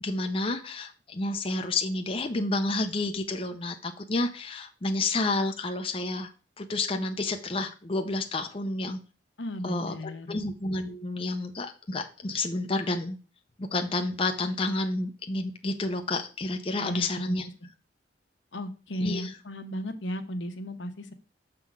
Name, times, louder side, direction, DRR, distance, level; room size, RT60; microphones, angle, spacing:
voice 1, 0.0-6.3 6.6-9.0 9.6-13.2 13.6-17.5 19.0-19.4, left 2 dB, 30° left, 5 dB, 0.6 m, -30 dB
voice 2, 9.4-10.4 16.8-17.3 18.5-21.1, equal, 80° left, 7 dB, 1.0 m, -34 dB
6.7 x 3.8 x 6.1 m, 0.36 s
head